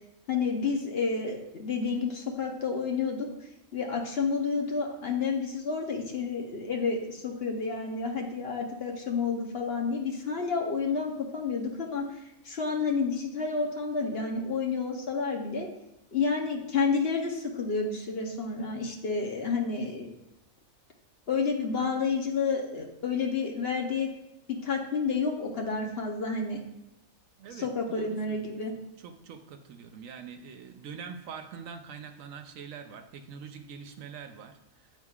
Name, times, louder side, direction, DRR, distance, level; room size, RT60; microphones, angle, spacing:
voice 1, 0.3-3.3 3.7-12.2 12.4-15.7 16.1-20.1 21.3-24.1 24.5-26.6 27.6-28.7, left 4 dB, 50° left, 1 dB, 1.0 m, -30 dB
voice 2, 27.4-28.6 29.0-34.9, right 6 dB, 75° right, 7 dB, 1.0 m, -44 dB
9.5 x 4.4 x 2.4 m, 0.86 s
omnidirectional pair, 1.4 m